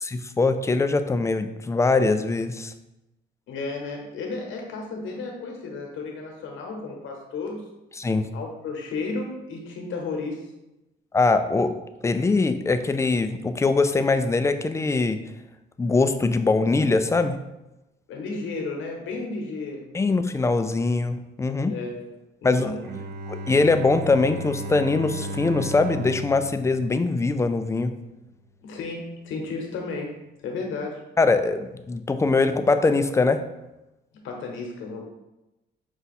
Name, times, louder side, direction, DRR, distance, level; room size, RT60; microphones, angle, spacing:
voice 1, 0.0-2.7 8.0-8.3 11.1-11.8 12.0-15.2 15.8-17.4 19.9-21.7 22.4-22.7 23.3-27.9 31.2-33.4, left 3 dB, 15° left, 9 dB, 0.3 m, -22 dB
voice 2, 3.5-7.6 8.3-10.5 18.1-19.9 21.6-22.8 28.6-30.1 30.4-31.0 34.2-35.0, left 3 dB, 80° left, 1 dB, 1.0 m, -33 dB
Bowed string instrument, 22.8-27.8, equal, 55° right, 0.6 m, -35 dB
5.2 x 2.3 x 4.1 m, 0.96 s
cardioid pair, 90°, 20 cm